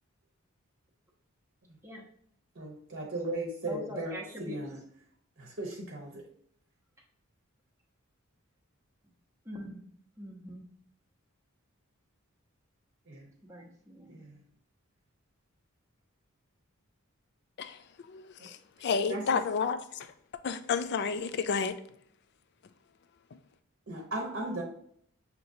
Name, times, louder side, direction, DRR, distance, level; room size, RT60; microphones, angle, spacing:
voice 1, 2.5-4.8 5.4-6.2 13.1-13.3 14.1-14.4 18.4-18.5 18.8-19.4 23.9-24.6, right 2 dB, 55° right, 0.9 m, -37 dB
voice 2, 3.6-4.6 9.5-9.8 10.2-10.7 13.4-14.3, left 1 dB, 15° right, 0.9 m, -43 dB
voice 3, 17.6-20.1 20.4-21.8, left 5 dB, 50° left, 0.4 m, -31 dB
6.3 x 2.9 x 2.6 m
head